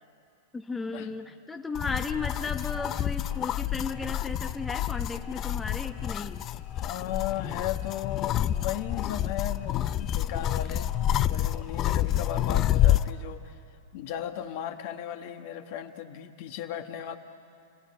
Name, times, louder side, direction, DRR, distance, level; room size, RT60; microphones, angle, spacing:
voice 1, 0.5-6.5, left 4 dB, 10° left, 5 dB, 1.0 m, -35 dB
sound 1, 1.7-13.1, left 12 dB, 35° left, 0.6 m, -28 dB
voice 2, 6.7-13.6 13.9-17.2, left 10 dB, 55° left, 6 dB, 1.6 m, -36 dB
29.0 x 17.5 x 9.7 m, 2.5 s
hypercardioid pair, 115°, 0 cm